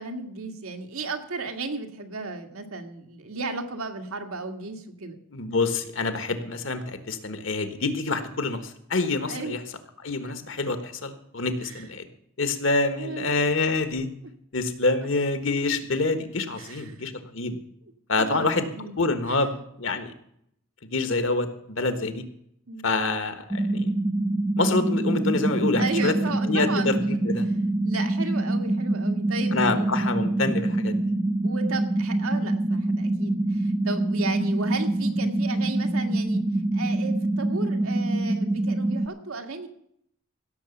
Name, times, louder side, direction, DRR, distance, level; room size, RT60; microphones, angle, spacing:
voice 1, 0.0-5.2 9.3-9.5 10.2-10.3 11.6-11.8 13.0-13.4 16.6-17.1 18.2-19.0 22.7-22.9 25.8-27.2 27.8-29.9 31.4-36.4 36.7-39.7, right 3 dB, 90° right, 5 dB, 1.7 m, -34 dB
voice 2, 5.3-9.6 10.0-12.1 12.4-14.1 14.5-17.6 18.1-18.7 19.0-20.1 20.9-22.2 22.8-23.9 24.6-26.1 26.5-27.5 29.5-31.0, left 3 dB, 65° left, 9 dB, 1.4 m, -26 dB
sound 1, 23.5-39.1, right 2 dB, 10° right, 0.5 m, -25 dB
16.5 x 6.9 x 7.0 m, 0.72 s
head